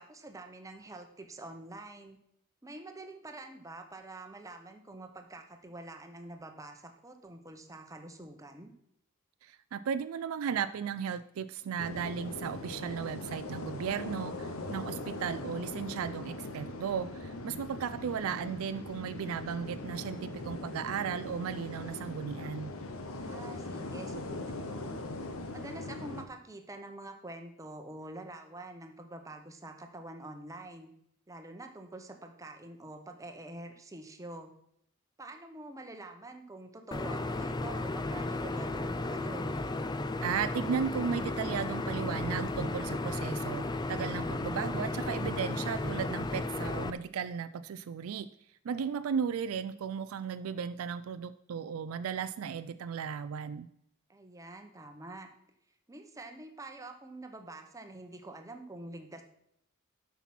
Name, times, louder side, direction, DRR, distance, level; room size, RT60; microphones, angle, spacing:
voice 1, 0.0-2.2 2.6-8.7 23.2-24.9 25.5-30.9 31.3-34.5 35.2-39.5 54.1-55.3 55.9-59.2, right 2 dB, 15° right, 5 dB, 0.9 m, -46 dB
voice 2, 9.4-22.7 40.2-48.3 48.6-53.7, right 7 dB, 85° right, 12 dB, 0.4 m, -35 dB
sound 1, 11.8-26.3, left 2 dB, 85° left, 1.0 m, -41 dB
sound 2, 36.9-46.9, left 2 dB, 20° left, 0.4 m, -34 dB
8.1 x 5.8 x 5.9 m, 0.73 s
head